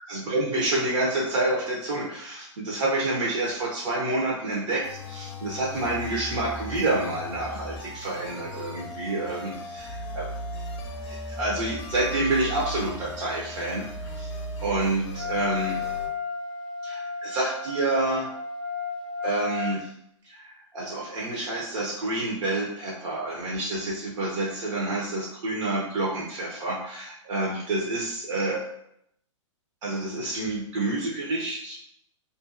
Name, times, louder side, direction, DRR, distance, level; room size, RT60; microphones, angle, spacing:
voice 1, 0.0-10.2 11.1-14.3 14.6-15.8 16.8-18.3 19.2-19.9 20.2-28.6 29.8-31.8, right 2 dB, 60° right, -4 dB, 0.8 m, -28 dB
sound 1, 4.8-16.1, left 1 dB, 50° left, 0.6 m, -37 dB
Wind instrument woodwind instrument, 15.1-19.8, left 5 dB, 90° right, 1.1 m, -33 dB
2.6 x 2.2 x 2.5 m, 0.74 s
hypercardioid pair, 120°, 17 cm